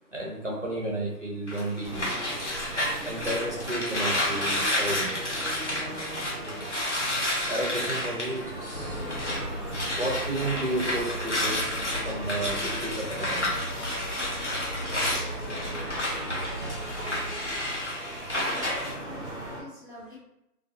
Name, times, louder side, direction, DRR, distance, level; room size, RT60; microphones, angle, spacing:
voice 1, 0.0-2.1 3.0-9.2 9.7-13.8, right 1 dB, 50° right, -3 dB, 0.5 m, -34 dB
sound 1, 1.5-9.4 9.7-18.9, left 1 dB, 50° left, 0.5 m, -31 dB
sound 2, 1.8-19.6, right 1 dB, 15° left, 1.1 m, -39 dB
sound 3, 8.7-17.7, equal, 85° left, 0.9 m, -38 dB
voice 2, 18.7-20.2, left 2 dB, 30° left, -10 dB, 0.9 m, -47 dB
2.5 x 2.2 x 2.2 m, 0.85 s
figure-of-eight pair, 175°, 50 cm